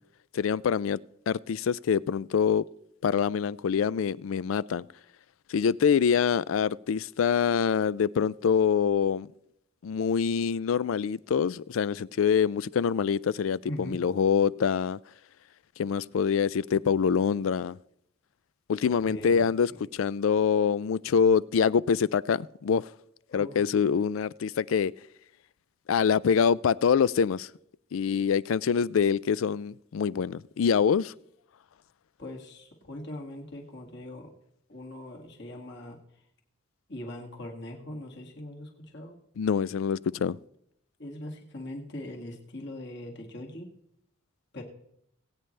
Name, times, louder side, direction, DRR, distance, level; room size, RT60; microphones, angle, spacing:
voice 1, 0.3-1.0 1.3-2.6 3.0-4.8 5.5-9.3 9.8-15.0 15.8-17.8 18.7-22.8 23.3-24.9 25.9-27.5 27.9-31.1 39.4-40.4, left 6 dB, 80° left, 0.4 m, -25 dB
voice 2, 13.7-14.0 18.8-19.8 23.3-23.7 32.2-34.3 34.7-36.0 36.9-39.1 41.0-43.7 44.5-44.6, left 1 dB, 55° left, 2.2 m, -41 dB
21.0 x 9.0 x 3.3 m
head